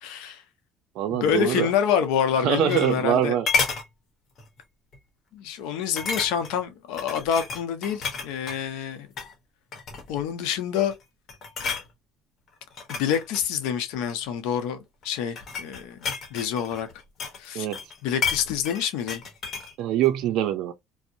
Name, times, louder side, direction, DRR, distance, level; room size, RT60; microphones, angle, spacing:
voice 1, 0.0-0.4 1.1-3.3 5.3-9.1 10.1-10.9 12.9-16.9 17.4-17.7 18.0-19.2, left 8 dB, 85° left, 0.6 m, -27 dB
voice 2, 1.0-1.7 2.4-3.5 17.5-17.8 19.8-20.7, right 10 dB, 70° right, 0.4 m, -24 dB
sound 1, 2.3-3.2 3.5-3.9 4.4-4.6 4.9-5.0 6.0-6.6 7.0-8.6 9.1-9.3 9.7-10.2 10.8-11.0 11.3-11.9 12.6-14.2 15.0-17.5 17.7-19.7 20.0-20.1, left 5 dB, 50° left, 0.9 m, -31 dB
2.6 x 2.0 x 2.5 m
supercardioid pair, 95°, 0 cm